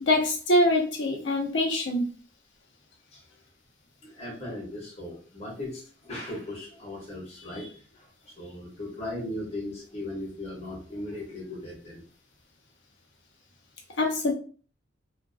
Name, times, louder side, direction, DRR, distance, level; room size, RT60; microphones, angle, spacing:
voice 1, 0.0-2.1 14.0-14.3, left 1 dB, 70° left, 1 dB, 0.6 m, -24 dB
voice 2, 4.0-12.0, left 1 dB, 35° left, -4 dB, 0.8 m, -38 dB
2.4 x 2.2 x 2.4 m, 0.39 s
head